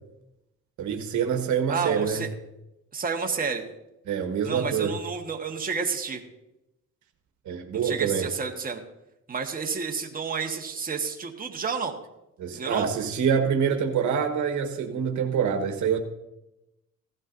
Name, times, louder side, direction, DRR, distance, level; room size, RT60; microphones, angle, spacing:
voice 1, 0.8-2.2 4.1-5.0 7.4-8.3 12.4-16.0, right 7 dB, 70° right, 5 dB, 1.4 m, -26 dB
voice 2, 1.7-2.3 2.9-3.6 4.4-6.2 7.8-8.8 9.3-12.0 12.5-12.9, right 5 dB, 30° right, 2 dB, 1.4 m, -30 dB
16.5 x 12.0 x 2.6 m, 0.93 s
cardioid pair, 90°, 30 cm